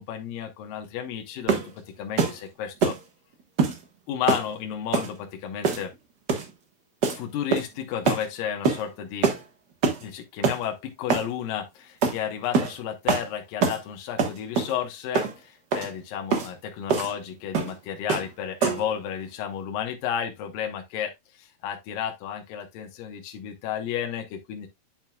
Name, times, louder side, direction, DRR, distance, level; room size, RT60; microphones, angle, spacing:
voice 1, 0.0-1.6 2.0-3.0 4.1-5.9 7.1-9.3 10.0-24.7, left 9 dB, 75° left, 2.8 m, -32 dB
sound 1, 1.5-1.7 2.2-2.4 2.8-3.0 3.6-3.8 4.3-4.5 4.9-5.1 5.6-5.9 6.3-6.5 7.0-7.2 7.5-7.8 8.1-8.2 8.6-8.8 9.2-9.4 9.8-10.0 10.4-10.6 11.1-11.3 12.0-12.2 12.5-12.7 13.1-13.3 13.6-13.8 14.2-14.7 15.1-15.3 15.7-15.9 16.3-16.5 16.9-17.1 17.5-17.8 18.1-18.3 18.6-18.9, right 5 dB, 75° right, 0.9 m, -24 dB
9.2 x 6.3 x 2.3 m
omnidirectional pair, 4.2 m